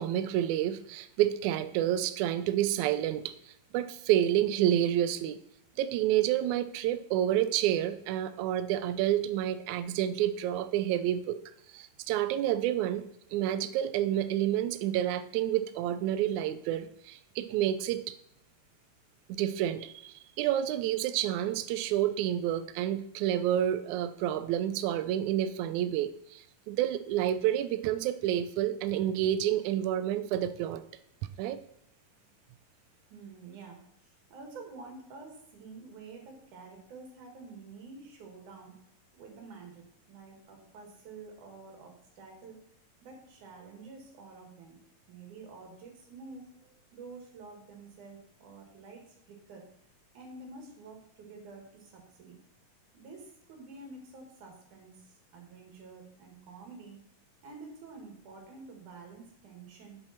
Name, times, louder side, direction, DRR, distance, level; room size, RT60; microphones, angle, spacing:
voice 1, 0.0-5.4 5.8-11.4 11.7-13.1 13.3-18.1 19.3-30.8 31.4-31.6, right 11 dB, 85° right, 12 dB, 1.7 m, -29 dB
voice 2, 33.1-38.8 39.1-42.6 43.0-44.8 45.1-49.7 50.1-52.4 52.9-57.0 57.4-60.0, right 4 dB, 65° right, 2 dB, 3.3 m, -49 dB
8.4 x 7.7 x 4.2 m, 0.76 s
omnidirectional pair, 3.9 m